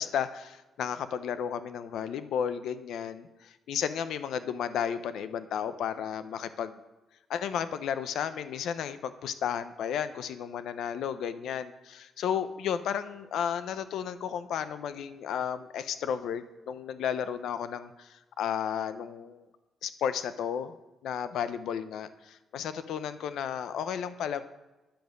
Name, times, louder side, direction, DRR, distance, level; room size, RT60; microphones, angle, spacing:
voice 1, 0.0-6.8 7.3-18.1 18.4-19.4 19.8-20.8 21.0-24.4, left 8 dB, 80° left, 12 dB, 0.7 m, -33 dB
10.5 x 7.1 x 6.4 m, 1.1 s
cardioid pair, 170°, 0 cm